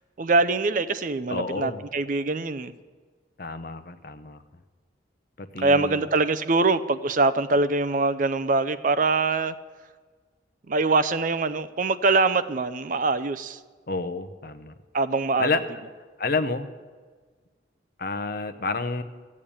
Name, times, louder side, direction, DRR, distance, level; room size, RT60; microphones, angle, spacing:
voice 1, 0.2-2.7 5.6-9.5 10.7-13.6 14.9-15.5, right 3 dB, 45° right, 14 dB, 0.5 m, -23 dB
voice 2, 1.3-1.8 3.4-4.4 5.4-6.1 13.9-14.7 15.4-15.6 16.2-16.7 18.0-19.0, left 3 dB, 50° left, 11 dB, 0.8 m, -29 dB
14.5 x 8.6 x 8.7 m, 1.5 s
head